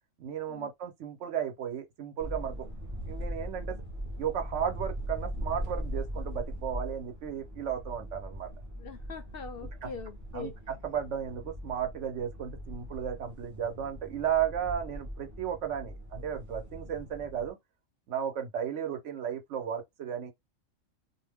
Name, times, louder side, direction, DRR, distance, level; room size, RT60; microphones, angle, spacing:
voice 1, 0.2-2.7 3.1-3.8 4.2-8.5 9.8-9.9 10.3-17.6 18.1-20.3, right 8 dB, 70° right, 1.1 m, -34 dB
sound 1, 2.2-17.5, equal, 20° right, 0.6 m, -40 dB
voice 2, 8.7-10.5, left 5 dB, 60° left, 0.6 m, -42 dB
2.6 x 2.1 x 3.3 m
omnidirectional pair, 1.3 m